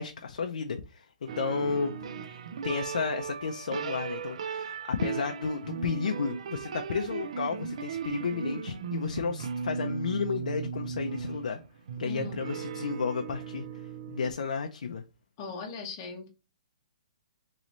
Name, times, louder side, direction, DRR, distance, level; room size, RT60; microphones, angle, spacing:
voice 1, 0.0-1.9 2.2-11.6 12.0-13.7 14.1-15.0, left 5 dB, 70° left, 0.5 m, -32 dB
sound 1, 1.3-14.3, right 6 dB, 50° right, 0.4 m, -37 dB
voice 2, 12.0-12.5 15.4-16.3, left 4 dB, 20° left, 0.8 m, -39 dB
3.1 x 3.1 x 3.9 m
hypercardioid pair, 175°, 4 cm